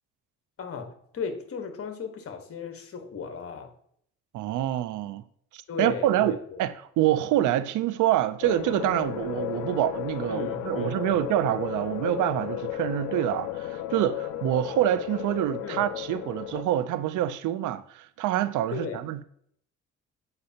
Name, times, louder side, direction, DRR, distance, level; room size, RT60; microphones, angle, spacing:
voice 1, 0.6-3.7 5.7-6.6 10.3-11.2 15.6-15.8 18.7-19.0, left 6 dB, 50° left, 1.3 m, -36 dB
voice 2, 4.3-5.2 5.5-19.2, right 12 dB, 85° right, 0.5 m, -26 dB
sound 1, 8.4-16.6, left 12 dB, 85° left, 0.6 m, -34 dB
7.9 x 5.3 x 2.8 m
cardioid pair, 90°, 30 cm